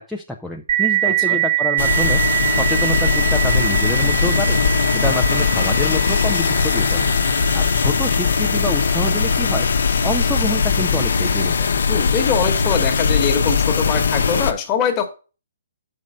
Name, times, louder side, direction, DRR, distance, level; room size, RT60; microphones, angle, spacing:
voice 1, 0.0-4.6 4.9-7.1 7.5-9.7 10.0-11.7, left 1 dB, ahead, 0 dB, 0.5 m, -27 dB
sound 1, 0.7-9.9, right 14 dB, 45° right, 1.0 m, -24 dB
voice 2, 1.1-1.4 11.9-15.1, left 6 dB, 20° left, 4 dB, 1.3 m, -23 dB
sound 2, 1.8-14.5, left 5 dB, 75° left, 0.8 m, -19 dB
6.4 x 5.4 x 6.2 m, 0.33 s
hypercardioid pair, 165°, 0 cm